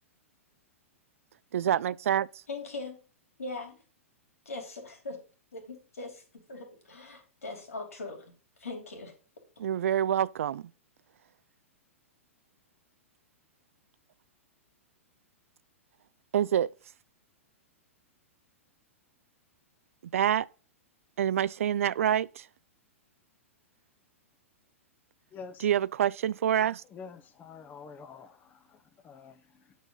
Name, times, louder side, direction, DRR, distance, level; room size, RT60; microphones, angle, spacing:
voice 1, 1.5-2.3 9.6-10.7 16.3-16.7 20.1-20.5 21.2-22.5 25.6-26.8, right 10 dB, 75° right, 0.3 m, -26 dB
voice 2, 2.5-3.0 3.4-3.8 4.4-5.2 5.5-8.3 8.6-9.1, left 3 dB, 85° left, 2.8 m, -40 dB
voice 3, 25.3-25.7 26.8-29.8, left 5 dB, 25° left, 0.8 m, -48 dB
9.2 x 4.1 x 5.5 m
hypercardioid pair, 115°, 8 cm